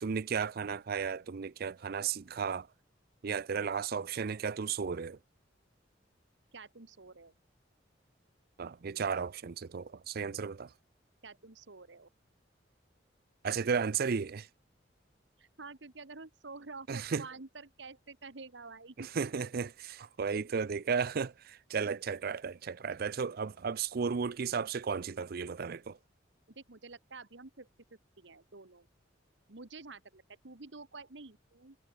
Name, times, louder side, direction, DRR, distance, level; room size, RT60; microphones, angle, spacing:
voice 1, 0.0-2.7 3.2-5.2 8.6-10.7 13.4-14.5 16.9-17.2 19.0-26.0, right 6 dB, 55° right, 0.5 m, -34 dB
voice 2, 6.5-7.3 11.2-12.1 15.4-19.1 26.5-28.9 29.5-31.8, right 3 dB, 70° right, 1.5 m, -49 dB
head